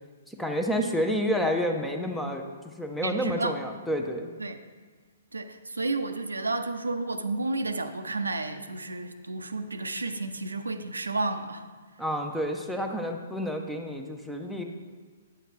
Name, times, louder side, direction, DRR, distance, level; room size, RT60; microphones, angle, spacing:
voice 1, 0.3-4.3 12.0-14.6, equal, 5° left, 3 dB, 0.7 m, -29 dB
voice 2, 3.0-3.5 4.4-4.6 5.3-11.6, right 2 dB, 75° right, 8 dB, 0.6 m, -31 dB
10.0 x 7.7 x 3.3 m, 1.5 s
figure-of-eight pair, 120°, 0 cm